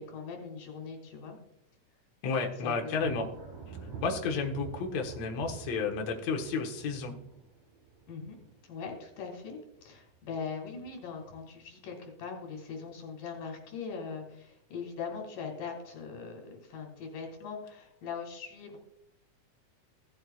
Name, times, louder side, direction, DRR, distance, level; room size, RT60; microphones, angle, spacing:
voice 1, 0.0-1.4 2.6-3.2 8.1-8.4 8.6-18.8, left 5 dB, 85° left, 2 dB, 3.8 m, -41 dB
voice 2, 2.2-3.2 4.0-7.2, left 4 dB, 60° left, 2 dB, 2.3 m, -32 dB
Thunder, 2.9-9.4 9.7-10.3 10.8-11.6, right 6 dB, 55° right, 5.2 m, -47 dB
16.5 x 7.7 x 2.4 m, 0.78 s
omnidirectional pair, 3.7 m